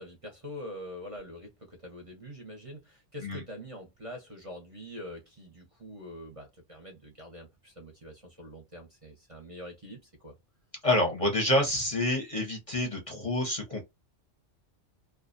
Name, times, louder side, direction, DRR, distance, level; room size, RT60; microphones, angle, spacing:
voice 1, 0.0-10.3, equal, 35° right, 0.7 m, -44 dB
voice 2, 10.8-13.8, left 1 dB, 35° left, 0.7 m, -28 dB
2.5 x 2.2 x 2.5 m
omnidirectional pair, 1.2 m